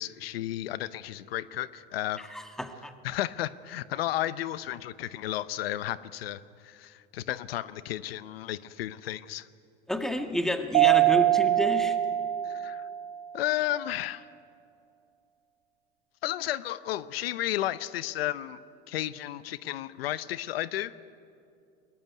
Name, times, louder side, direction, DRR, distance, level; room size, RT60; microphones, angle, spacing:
voice 1, 0.0-2.3 3.0-9.5 12.4-12.9 13.3-14.3 16.2-18.6 18.9-21.0, left 13 dB, 85° left, 16 dB, 0.8 m, -33 dB
voice 2, 2.3-2.9 9.9-12.0, left 1 dB, ahead, 6 dB, 1.9 m, -30 dB
Mallet percussion, 10.7-13.3, right 15 dB, 65° right, 1.1 m, -23 dB
21.5 x 19.5 x 9.5 m, 2.5 s
supercardioid pair, 110°, 29 cm